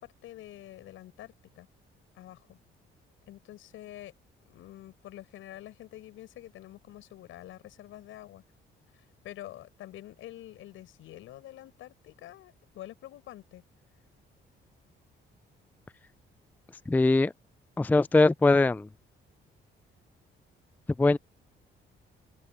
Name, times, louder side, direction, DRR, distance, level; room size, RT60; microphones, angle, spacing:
voice 1, 0.0-1.7 2.1-2.6 3.3-4.1 4.4-8.4 8.9-13.6, left 14 dB, 85° left, 7.9 m, -47 dB
voice 2, 16.9-17.3 17.8-18.9 21.0-21.2, left 2 dB, 10° left, 0.4 m, -21 dB
cardioid pair, 90°, 20 cm